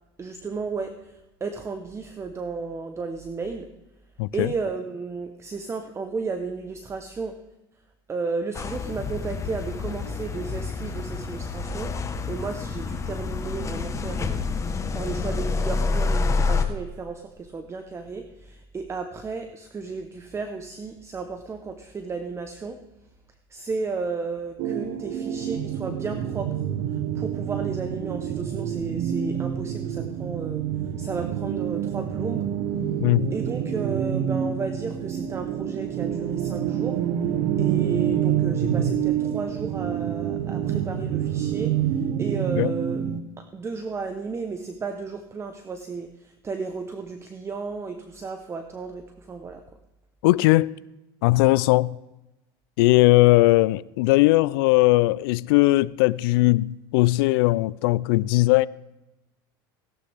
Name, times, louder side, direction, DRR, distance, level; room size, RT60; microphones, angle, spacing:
voice 1, 0.2-3.7 4.3-7.3 8.1-22.8 23.5-26.6 26.9-30.6 31.0-32.5 33.3-37.0 37.6-43.1 43.4-49.6, right 4 dB, 20° right, 0.9 m, -33 dB
voice 2, 4.2-4.5 33.0-33.3 42.6-42.7 50.2-50.7 51.2-52.0 52.8-58.7, left 20 dB, 75° left, 0.4 m, -19 dB
sound 1, 8.5-16.7, left 4 dB, 25° left, 1.2 m, -28 dB
sound 2, 24.6-43.2, right 9 dB, 65° right, 1.0 m, -27 dB
16.5 x 11.5 x 3.4 m
supercardioid pair, 105°, 13 cm